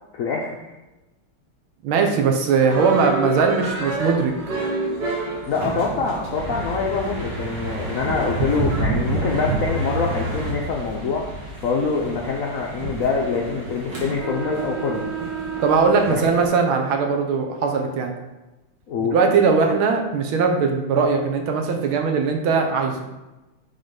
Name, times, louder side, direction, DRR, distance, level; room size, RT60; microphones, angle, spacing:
voice 1, 0.1-0.7 5.5-11.3 11.6-15.1 16.1-16.3 18.9-19.2, left 4 dB, 80° left, -1 dB, 0.7 m, -25 dB
voice 2, 1.8-4.3 15.6-18.1 19.1-23.1, right 5 dB, 80° right, 3 dB, 1.7 m, -20 dB
sound 1, 2.7-16.5, right 2 dB, 55° right, 2.1 m, -28 dB
6.3 x 3.9 x 5.2 m, 1.1 s
omnidirectional pair, 2.3 m